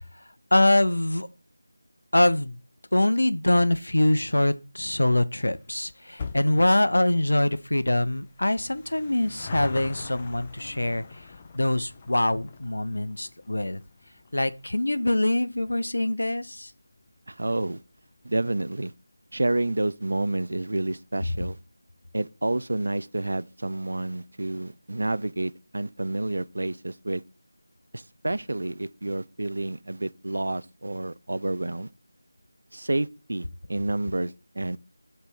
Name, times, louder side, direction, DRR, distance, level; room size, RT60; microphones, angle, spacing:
voice 1, 0.5-1.3 2.1-2.6 2.9-11.3 11.5-13.8 14.3-16.7, left 1 dB, 65° left, 0.7 m, -24 dB
sound 1, 5.4-18.2 18.5-18.6 19.4-19.5 19.7-19.8 20.1-20.2, left 5 dB, 20° left, 0.5 m, -43 dB
voice 2, 17.3-17.8 18.2-18.9 19.3-21.6 22.1-27.2 27.9-31.9 32.7-34.8, right 2 dB, 60° right, 0.5 m, -29 dB
8.1 x 3.4 x 5.9 m
figure-of-eight pair, 165°, 0 cm